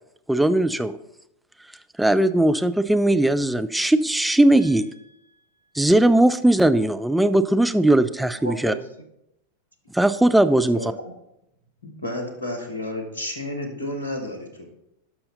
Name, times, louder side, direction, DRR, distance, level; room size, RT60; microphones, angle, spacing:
voice 1, 0.3-1.0 2.0-4.9 5.8-8.7 9.9-10.8, right 1 dB, 5° right, 10 dB, 0.4 m, -19 dB
voice 2, 4.6-5.7 8.4-9.1 10.5-11.1 12.7-12.8, equal, 90° right, 4 dB, 1.0 m, -39 dB
voice 3, 11.8-14.7, left 1 dB, 70° left, 3 dB, 1.7 m, -31 dB
12.0 x 5.7 x 4.1 m, 0.81 s
figure-of-eight pair, 90°, 0 cm